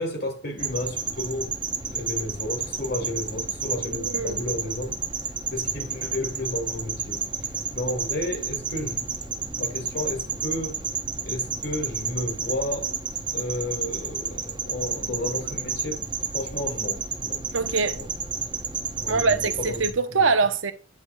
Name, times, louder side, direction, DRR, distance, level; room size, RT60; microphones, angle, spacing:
voice 1, 0.0-4.9 5.5-10.8 11.2-12.9 13.3-16.0 16.3-17.4 17.8-18.1 19.0-19.8 20.1-20.3, left 1 dB, 50° left, 2.6 m, -32 dB
sound 1, 0.6-19.9, right 5 dB, 25° right, 0.8 m, -31 dB
voice 2, 3.9-4.4 17.5-18.0 19.1-20.7, right 4 dB, 80° right, 0.8 m, -23 dB
9.6 x 5.4 x 2.3 m
head